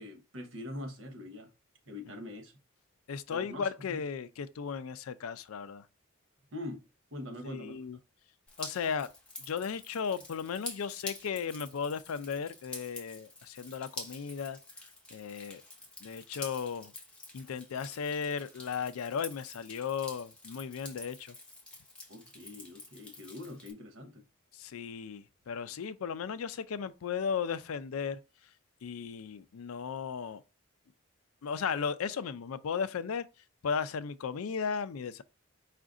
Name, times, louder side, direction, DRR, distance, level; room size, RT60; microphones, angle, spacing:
voice 1, 0.0-1.5 1.9-2.5 3.3-4.0 6.5-6.8 7.1-7.8 22.1-24.2, left 1 dB, 65° right, 1.0 m, -43 dB
voice 2, 3.1-5.8 7.4-8.0 8.6-9.1 9.4-14.6 15.1-15.6 16.0-16.9 17.3-21.4 24.5-28.2 28.8-30.4 31.4-33.2 33.6-35.2, left 6 dB, 85° left, 0.4 m, -35 dB
Drip, 8.5-23.7, left 2 dB, 5° left, 0.8 m, -48 dB
5.0 x 2.5 x 3.6 m
head